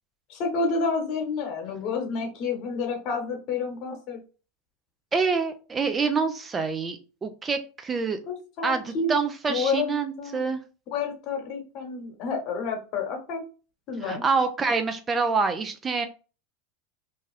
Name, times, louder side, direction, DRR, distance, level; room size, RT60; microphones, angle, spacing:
voice 1, 0.3-4.2 8.3-9.1 9.5-9.9 10.2-10.4 10.9-13.4 13.9-14.2, left 4 dB, 55° left, 4 dB, 1.1 m, -29 dB
voice 2, 5.1-8.2 8.6-10.6 14.0-16.1, right 4 dB, 25° right, 7 dB, 0.5 m, -26 dB
2.7 x 2.3 x 3.2 m, 0.34 s
hypercardioid pair, 105°, 0 cm